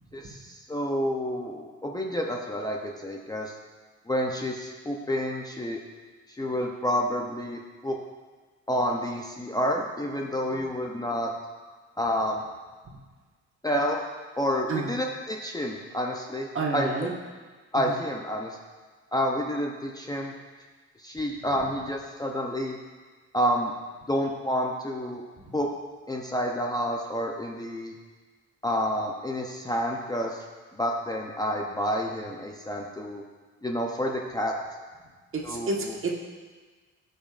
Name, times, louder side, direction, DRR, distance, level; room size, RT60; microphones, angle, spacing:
voice 1, 0.1-3.5 4.1-5.8 6.3-8.0 8.7-11.3 12.0-12.4 13.6-14.0 14.4-17.1 17.7-18.6 19.1-20.3 21.0-22.8 23.3-23.7 24.1-25.2 25.5-25.7 26.1-27.9 28.6-30.4 30.7-33.2 33.6-34.5 35.4-36.0, equal, 15° left, 0 dB, 0.7 m, -29 dB
voice 2, 16.5-17.1 17.9-18.0 35.3-36.1, right 3 dB, 45° right, -1 dB, 1.5 m, -29 dB
14.0 x 5.2 x 2.5 m, 1.4 s
cardioid pair, 90°, 30 cm